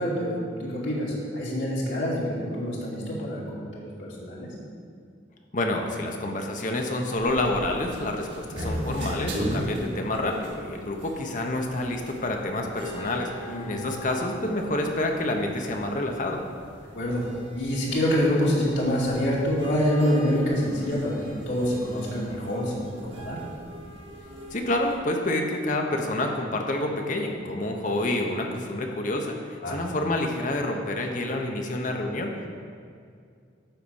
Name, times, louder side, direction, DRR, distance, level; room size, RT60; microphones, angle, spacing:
voice 1, 0.0-4.5 13.5-13.6 16.9-17.2 17.5-23.4 29.6-29.8, equal, 70° left, -6 dB, 2.4 m, -26 dB
voice 2, 5.5-16.4 24.5-32.3, left 1 dB, 40° left, 2 dB, 0.9 m, -28 dB
sound 1, 7.1-24.9, equal, 80° right, 2.2 m, -38 dB
11.5 x 4.2 x 7.1 m, 2.3 s
head